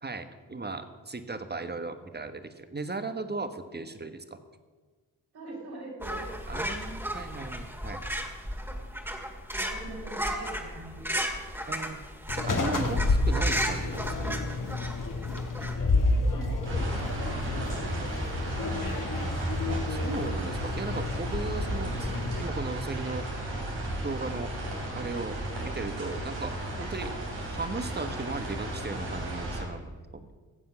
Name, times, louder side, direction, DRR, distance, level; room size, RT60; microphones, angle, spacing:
voice 1, 0.0-4.4 6.5-8.0 11.7-12.0 12.3-14.4 17.5-18.3 19.7-23.3 24.0-24.5 24.9-30.4, right 3 dB, 25° right, 9 dB, 1.2 m, -37 dB
voice 2, 5.3-6.3 9.5-11.3 16.2-18.3, right 2 dB, 70° right, -1 dB, 4.1 m, -43 dB
sound 1, 6.0-15.7, equal, 5° right, 2.1 m, -34 dB
sound 2, 12.3-22.4, left 2 dB, 55° left, 2.0 m, -30 dB
sound 3, 16.6-29.6, right 1 dB, 90° right, 3.3 m, -34 dB
16.0 x 7.5 x 6.0 m, 1.4 s
cardioid pair, 50°, 39 cm